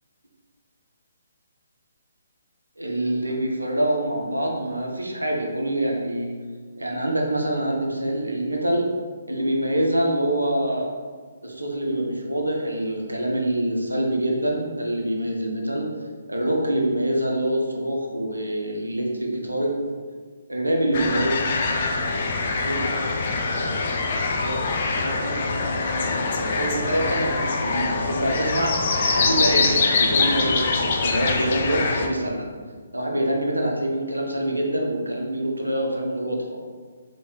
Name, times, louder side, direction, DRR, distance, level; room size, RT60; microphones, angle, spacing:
voice 1, 2.8-6.3 6.8-8.9 9.3-10.9 11.4-15.9 16.3-19.8 20.5-21.4 22.6-22.9 23.6-23.7 24.4-24.6 25.0-25.4 26.0-28.8 29.1-32.5 32.9-36.5, right 1 dB, 90° right, -1 dB, 0.6 m, -25 dB
sound 1, 20.9-32.1, left 4 dB, 45° left, 0.4 m, -24 dB
3.1 x 2.8 x 2.7 m, 1.5 s
figure-of-eight pair, 140°, 0 cm